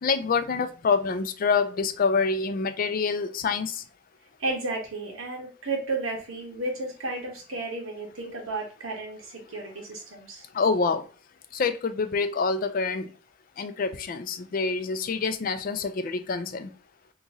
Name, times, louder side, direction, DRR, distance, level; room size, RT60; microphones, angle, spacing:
voice 1, 0.0-3.8 10.5-11.1 11.5-13.1 13.6-16.7, left 4 dB, 45° left, 10 dB, 0.3 m, -26 dB
voice 2, 4.4-10.4, right 2 dB, 90° right, 0 dB, 1.2 m, -33 dB
2.9 x 2.6 x 3.5 m, 0.35 s
head